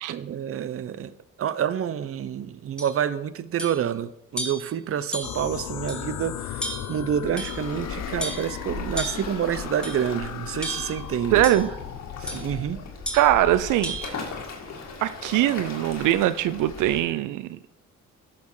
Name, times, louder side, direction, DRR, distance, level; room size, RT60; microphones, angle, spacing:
voice 1, 0.1-1.1 1.4-11.4 12.2-12.8, right 9 dB, 50° right, 15 dB, 0.7 m, -28 dB
sound 1, 2.8-2.9 3.6-3.9 4.4-4.7 5.1-5.5 5.9-6.0 6.6-7.0 7.4-7.8 8.2-8.5 9.0-9.3 9.8-10.1 10.6-11.0 11.4-11.7 12.3-12.5 13.1-13.3 13.8-14.1, right 1 dB, 5° left, 2.0 m, -33 dB
sound 2, 5.2-12.7, left 11 dB, 75° left, 0.7 m, -36 dB
Waves surf, 7.3-17.0, left 4 dB, 60° left, 2.3 m, -38 dB
voice 2, 11.3-11.7 13.1-14.0 15.0-17.6, right 13 dB, 90° right, 13 dB, 0.5 m, -22 dB
11.0 x 6.8 x 4.8 m, 0.79 s
cardioid pair, 90°, 30 cm